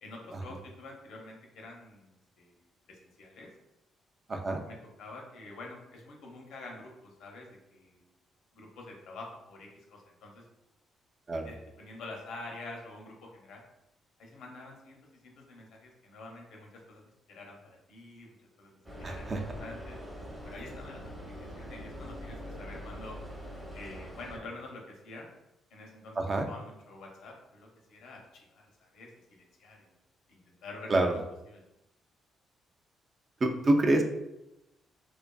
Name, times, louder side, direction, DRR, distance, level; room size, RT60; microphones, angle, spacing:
voice 1, 0.0-2.6 2.8-3.5 4.7-8.0 8.5-10.4 11.4-13.6 14.2-17.0 17.3-18.7 19.0-20.0 20.4-21.1 21.4-23.2 23.7-25.3 25.7-29.9 30.3-31.2 31.5-31.6, left 2 dB, 80° left, 0 dB, 0.6 m, -47 dB
voice 2, 4.3-4.6 11.3-11.5 19.0-19.4 26.2-26.5 30.9-31.1 33.4-34.0, right 2 dB, 35° right, 3 dB, 0.3 m, -26 dB
sound 1, 18.8-24.4, equal, 10° right, 0.7 m, -43 dB
2.5 x 2.3 x 2.2 m, 0.89 s
cardioid pair, 90°, 0 cm